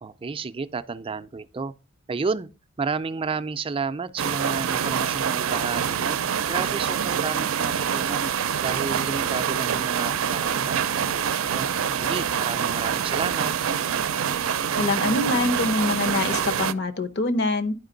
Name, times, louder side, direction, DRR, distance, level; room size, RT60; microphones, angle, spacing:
voice 1, 0.0-1.7 2.1-2.5 2.8-6.2 6.5-8.3 8.6-11.2 11.5-11.7 12.0-13.5, right 4 dB, 25° right, 0.4 m, -31 dB
sound 1, 4.2-16.7, right 8 dB, 85° right, 0.5 m, -25 dB
voice 2, 14.8-17.7, left 2 dB, 55° left, 0.8 m, -24 dB
10.5 x 5.0 x 3.9 m
head